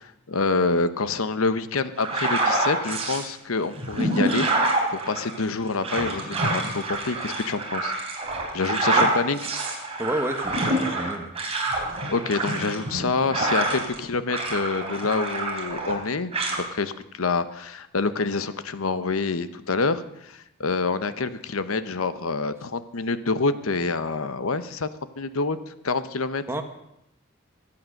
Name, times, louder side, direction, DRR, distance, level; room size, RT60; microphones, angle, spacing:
voice 1, 0.0-7.9 8.5-9.4 12.1-24.9 25.2-25.6 25.8-26.4, left 3 dB, 85° left, 12 dB, 0.9 m, -27 dB
sound 1, 2.0-3.3 3.7-14.0 14.3-16.0 16.3-16.6, right 2 dB, 30° right, 3.6 m, -26 dB
voice 2, 10.0-11.3 26.5-26.6, right 1 dB, 10° right, 5 dB, 1.4 m, -30 dB
23.0 x 8.8 x 6.5 m, 0.83 s
head